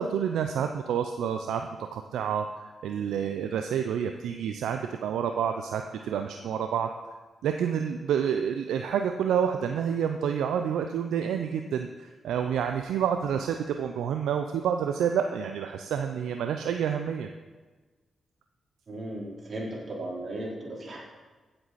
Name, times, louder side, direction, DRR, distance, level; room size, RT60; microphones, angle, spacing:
voice 1, 0.0-6.9 7.4-17.3, right 8 dB, 80° right, 6 dB, 0.5 m, -29 dB
voice 2, 18.9-21.0, right 1 dB, 55° right, -4 dB, 4.1 m, -36 dB
16.0 x 7.9 x 4.2 m, 1.3 s
supercardioid pair, 40°, 0 cm